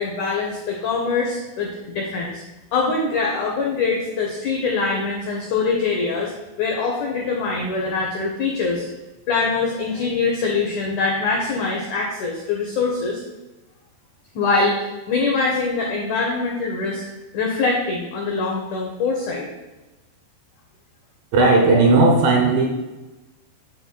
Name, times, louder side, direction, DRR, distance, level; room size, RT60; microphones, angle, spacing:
voice 1, 0.0-2.4 2.7-6.3 6.6-8.8 9.3-13.2 14.3-17.0 17.3-19.5, left 4 dB, 90° left, -1 dB, 1.7 m, -23 dB
voice 2, 21.3-22.7, right 3 dB, 70° right, 1 dB, 2.3 m, -15 dB
9.1 x 7.8 x 2.3 m, 1.1 s
omnidirectional pair, 4.9 m